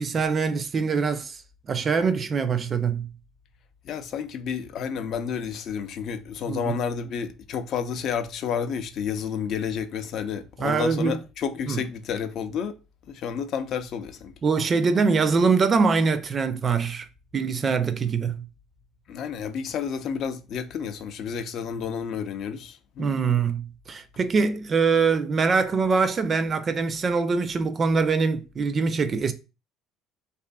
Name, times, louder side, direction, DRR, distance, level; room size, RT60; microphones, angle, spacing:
voice 1, 0.0-1.4 1.7-3.1 6.5-6.7 10.6-11.2 11.7-11.8 14.4-17.1 17.3-18.4 23.0-29.3, right 5 dB, 40° right, 0.4 m, -23 dB
voice 2, 3.8-12.7 13.1-14.3 19.1-23.1, left 7 dB, 60° left, 0.4 m, -30 dB
2.6 x 2.4 x 2.2 m
hypercardioid pair, 75°, 0 cm